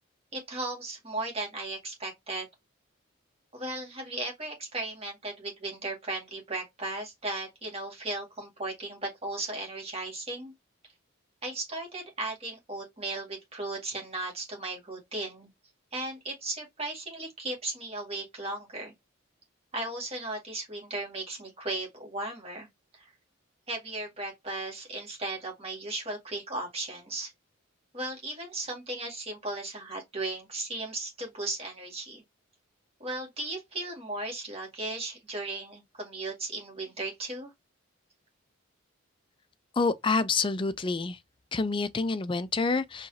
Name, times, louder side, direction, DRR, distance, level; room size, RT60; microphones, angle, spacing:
voice 1, 0.3-2.5 3.5-10.5 11.4-15.5 15.9-18.9 19.7-22.7 22.9-23.1 23.7-27.3 27.9-32.2 33.0-37.5, right 2 dB, 30° right, 2.0 m, -36 dB
voice 2, 39.8-41.2 41.5-43.1, left 4 dB, 25° left, 0.4 m, -27 dB
4.6 x 3.6 x 2.8 m
head